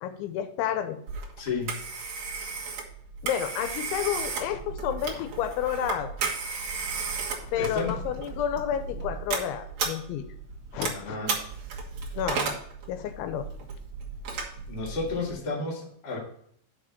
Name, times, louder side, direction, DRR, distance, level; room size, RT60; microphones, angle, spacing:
voice 1, 0.0-1.0 3.2-6.1 7.4-10.2 10.7-11.2 12.1-12.5 12.9-13.5, left 9 dB, 85° left, 9 dB, 3.1 m, -30 dB
Telephone, 1.1-15.3, right 4 dB, 65° right, 1.8 m, -34 dB
voice 2, 1.4-1.8 7.5-8.0 10.8-11.3 14.7-16.2, left 4 dB, 40° left, -3 dB, 1.6 m, -32 dB
6.8 x 5.1 x 7.1 m, 0.65 s
omnidirectional pair, 5.4 m